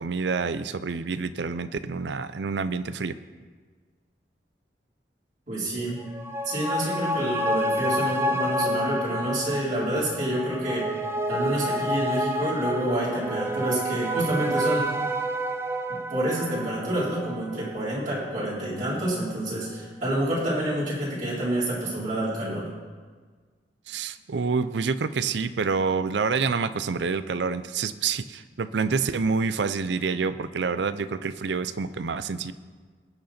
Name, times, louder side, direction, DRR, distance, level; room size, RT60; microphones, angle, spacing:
voice 1, 0.0-3.2 23.9-32.5, right 5 dB, 80° right, 14 dB, 0.5 m, -27 dB
voice 2, 5.5-6.0 6.4-10.9 11.3-14.9 15.9-22.7, right 1 dB, 50° right, -8 dB, 3.8 m, -28 dB
sound 1, 6.0-18.9 19.2-19.3, right 1 dB, 15° right, 0.5 m, -29 dB
19.5 x 6.6 x 4.3 m, 1.5 s
head